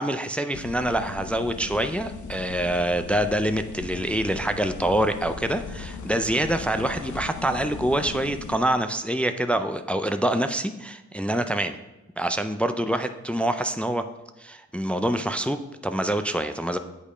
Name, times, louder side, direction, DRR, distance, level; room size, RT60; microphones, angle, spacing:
voice 1, 0.0-11.8 12.2-14.0 14.4-16.8, right 1 dB, 5° left, 8 dB, 0.3 m, -26 dB
sound 1, 0.5-8.6, left 5 dB, 90° left, 0.8 m, -38 dB
8.6 x 5.2 x 4.9 m, 1.0 s
wide cardioid pair, 135°, 29 cm